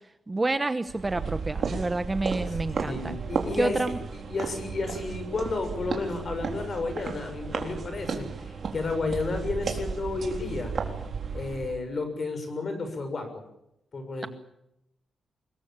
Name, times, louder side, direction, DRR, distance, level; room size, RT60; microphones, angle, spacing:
voice 1, 0.3-3.2 3.6-4.0, right 2 dB, 15° right, 10 dB, 1.0 m, -28 dB
sound 1, 0.9-11.8, right 5 dB, 45° right, 4.0 m, -34 dB
voice 2, 2.9-10.7 11.3-13.4 13.9-14.3, left 3 dB, 35° left, 7 dB, 6.7 m, -32 dB
25.0 x 22.0 x 7.4 m, 0.82 s
wide cardioid pair, 180°, 0 cm